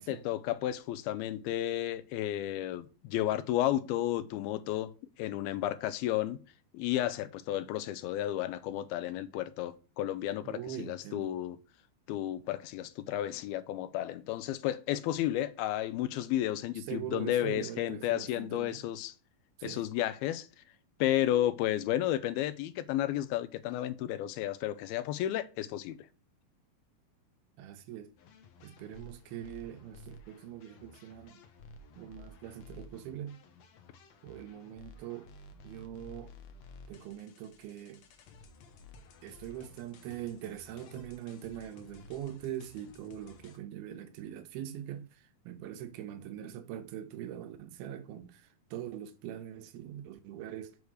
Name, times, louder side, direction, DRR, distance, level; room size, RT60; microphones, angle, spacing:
voice 1, 0.0-4.9 5.2-6.4 6.7-11.6 12.1-19.1 19.6-20.5 21.0-26.0, left 13 dB, 85° left, 2.5 m, -32 dB
voice 2, 10.4-11.3 16.8-18.9 19.6-19.8 27.6-28.1 28.6-31.4 32.0-33.4 34.2-35.3 35.6-36.3 36.9-38.0 39.2-50.8, right 11 dB, 85° right, 2.7 m, -42 dB
sound 1, 28.2-43.6, left 3 dB, 65° left, 1.8 m, -54 dB
6.9 x 4.9 x 6.4 m
omnidirectional pair, 4.3 m